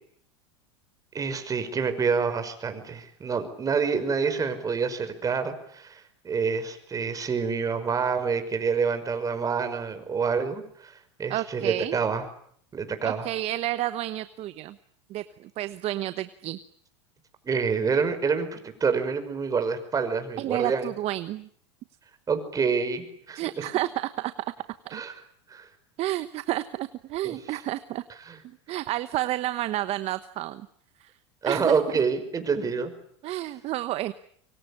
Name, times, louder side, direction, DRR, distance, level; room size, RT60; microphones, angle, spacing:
voice 1, 1.1-12.2 12.7-13.3 17.4-20.9 22.3-23.7 24.9-25.2 25.5-25.7 27.2-27.4 28.3-28.4 31.4-32.9 33.3-33.4, right 5 dB, 25° right, 9 dB, 5.5 m, -27 dB
voice 2, 11.3-12.0 13.0-14.8 15.1-16.6 20.4-21.5 23.3-24.5 24.8-25.0 26.0-28.0 28.7-30.6 31.0-31.1 31.4-31.8 33.2-34.1, right 15 dB, 45° right, 13 dB, 1.1 m, -30 dB
25.5 x 24.5 x 8.6 m, 0.66 s
hypercardioid pair, 100°, 14 cm